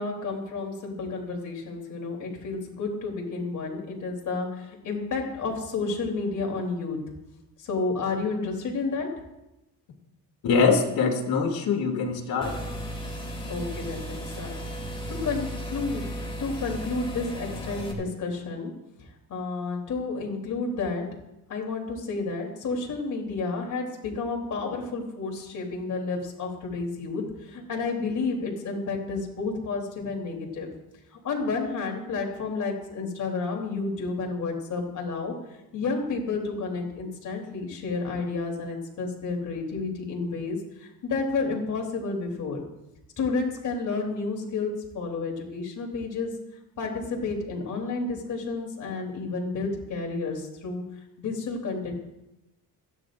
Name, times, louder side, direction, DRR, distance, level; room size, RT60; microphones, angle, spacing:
voice 1, 0.0-7.0 7.6-9.1 13.5-14.6 15.1-18.7 19.3-21.1 21.5-30.7 31.1-35.3 35.7-42.6 43.2-46.3 46.8-50.8 51.2-51.9, left 4 dB, 55° left, 0 dB, 3.4 m, -31 dB
voice 2, 10.4-12.5, left 5 dB, 80° left, 1 dB, 2.7 m, -23 dB
sound 1, 12.4-17.9, equal, 15° left, 2.5 m, -35 dB
28.0 x 10.0 x 2.6 m, 0.95 s
cardioid pair, 135°, 36 cm